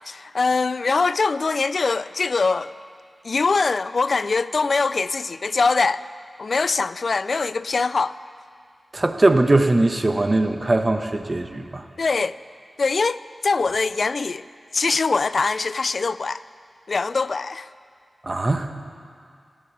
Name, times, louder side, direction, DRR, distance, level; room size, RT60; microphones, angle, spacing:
voice 1, 0.1-2.7 3.2-6.0 6.4-8.2 12.0-12.4 12.8-14.4 14.7-16.4 16.9-17.7, left 4 dB, 65° left, 0.3 m, -22 dB
voice 2, 8.9-11.8 18.2-18.7, right 2 dB, 40° right, 1.1 m, -20 dB
17.0 x 8.6 x 8.4 m
cardioid pair, 45°, 0 cm